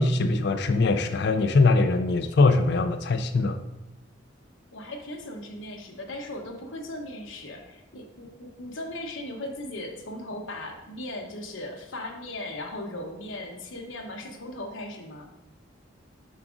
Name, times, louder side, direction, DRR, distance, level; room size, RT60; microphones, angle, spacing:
voice 1, 0.0-3.6, left 3 dB, 60° left, 9 dB, 0.4 m, -22 dB
voice 2, 4.7-15.3, left 1 dB, 80° left, 3 dB, 0.9 m, -38 dB
7.3 x 5.9 x 2.5 m, 0.96 s
head